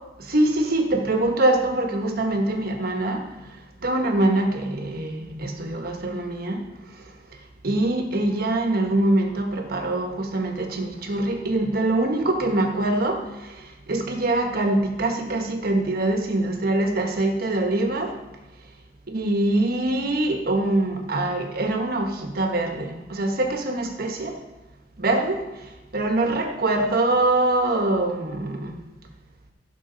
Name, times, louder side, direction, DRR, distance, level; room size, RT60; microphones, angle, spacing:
voice 1, 0.3-3.2 3.8-6.6 7.6-18.1 19.1-24.4 25.0-25.4 25.9-28.8, right 2 dB, 55° right, 4 dB, 1.3 m, -24 dB
15.5 x 6.0 x 4.0 m, 1.1 s
head